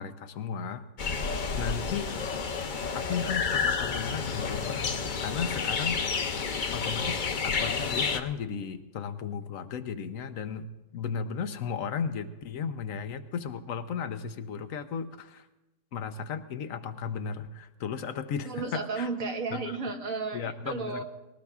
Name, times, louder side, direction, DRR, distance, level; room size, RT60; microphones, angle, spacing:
voice 1, 0.0-2.1 2.9-4.9 5.2-6.4 6.7-15.5 15.9-19.1 19.5-19.6 20.3-21.0, left 6 dB, 75° left, 10 dB, 1.2 m, -35 dB
sound 1, 1.0-8.2, left 5 dB, 45° left, 0.7 m, -30 dB
voice 2, 18.5-21.0, right 4 dB, 75° right, 4 dB, 1.7 m, -34 dB
20.5 x 18.0 x 2.4 m, 1.0 s
omnidirectional pair, 1.4 m